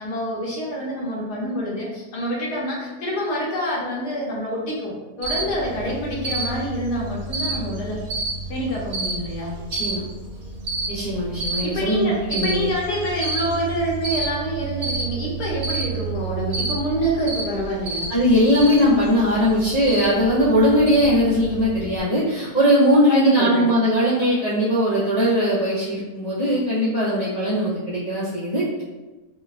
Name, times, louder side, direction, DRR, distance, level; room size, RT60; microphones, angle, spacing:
voice 1, 0.0-4.9 5.2-8.0 8.5-9.5 11.6-18.1 23.1-23.8, equal, 85° left, -3 dB, 1.4 m, -27 dB
Cricket, 5.2-22.0, right 3 dB, 70° right, 1.1 m, -30 dB
voice 2, 9.7-10.0 10.9-12.7 18.1-28.8, equal, 55° left, -9 dB, 0.4 m, -20 dB
4.2 x 2.2 x 2.4 m, 1.2 s
omnidirectional pair, 1.7 m